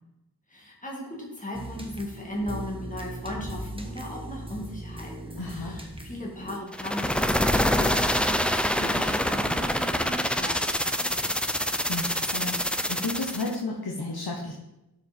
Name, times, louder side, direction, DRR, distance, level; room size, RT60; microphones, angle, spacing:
voice 1, 0.5-11.3, left 1 dB, 20° left, -3 dB, 2.1 m, -37 dB
sound 1, 1.5-6.6, right 1 dB, 15° right, 1.1 m, -39 dB
voice 2, 5.4-5.8 11.9-14.5, left 2 dB, 65° left, -2 dB, 1.2 m, -32 dB
sound 2, 6.7-13.6, equal, 5° left, 0.5 m, -26 dB
12.5 x 5.2 x 4.3 m, 0.94 s
wide cardioid pair, 50°, 39 cm